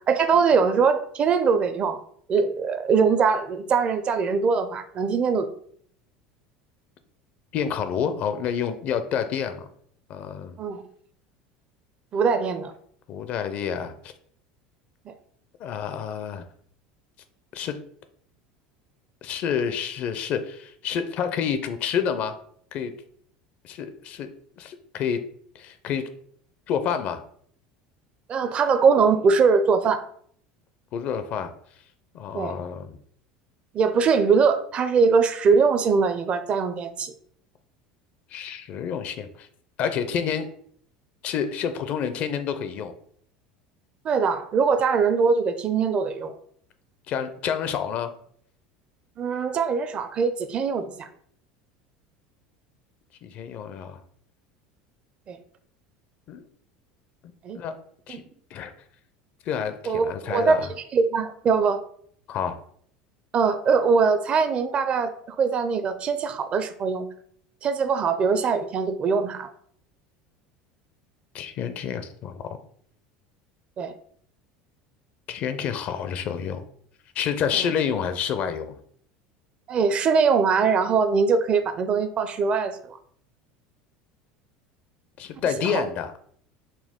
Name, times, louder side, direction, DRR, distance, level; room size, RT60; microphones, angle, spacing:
voice 1, 0.1-2.0 2.3-5.5 10.6-10.8 12.1-12.7 15.1-15.2 28.3-30.0 32.3-32.5 33.7-37.1 44.0-46.4 49.2-51.1 55.3-55.4 57.4-57.6 58.1-58.2 59.9-61.8 63.3-67.1 67.6-69.5 73.8-73.9 77.5-77.7 79.7-83.0 85.6-85.8, right 5 dB, 40° right, 10 dB, 0.5 m, -22 dB
voice 2, 7.5-9.7 10.1-10.6 13.1-14.1 15.6-16.5 17.5-17.8 19.2-22.4 22.7-22.9 23.6-24.3 24.6-25.2 25.5-26.1 26.7-27.2 30.9-31.5 32.1-33.0 38.3-39.5 39.8-40.5 41.2-42.9 47.1-48.1 53.2-54.0 56.3-56.4 57.5-57.8 58.1-58.2 58.5-58.7 59.5-60.7 62.3-62.6 71.3-72.6 75.3-76.6 77.2-78.8 85.2-86.2, left 7 dB, 50° left, 10 dB, 0.5 m, -28 dB
4.2 x 2.3 x 3.6 m, 0.62 s
supercardioid pair, 95°, 3 cm